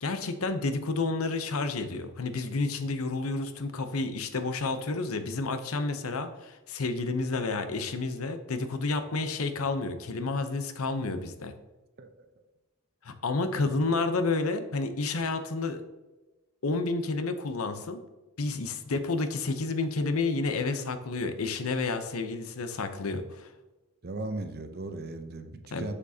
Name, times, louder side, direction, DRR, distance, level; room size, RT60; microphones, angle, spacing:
voice 1, 0.0-11.5 13.0-15.8 16.6-18.0 18.4-23.5 25.7-25.9, left 3 dB, 85° left, 9 dB, 0.8 m, -30 dB
voice 2, 24.0-25.9, right 2 dB, 45° right, 8 dB, 0.7 m, -37 dB
7.2 x 6.7 x 2.8 m, 1.1 s
head